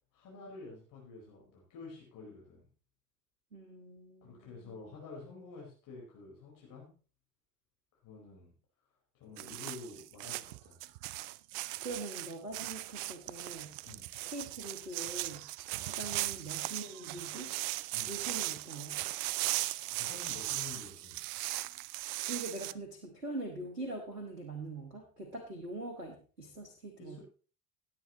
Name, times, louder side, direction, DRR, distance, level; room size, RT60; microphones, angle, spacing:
voice 1, 0.1-2.6 4.2-6.9 8.0-8.5 9.1-10.7 13.8-14.1 15.7-15.9 17.9-18.1 19.9-21.2 22.2-22.3 27.0-27.2, left 4 dB, 45° left, -3 dB, 4.6 m, -49 dB
voice 2, 3.5-5.0 11.8-13.8 14.3-15.5 15.8-17.5 18.1-19.0 22.3-27.2, right 2 dB, 90° right, 4 dB, 1.4 m, -43 dB
sound 1, 9.4-22.7, right 19 dB, 45° right, 0.5 m, -38 dB
17.5 x 8.8 x 3.0 m, 0.37 s
figure-of-eight pair, 65°, 44 cm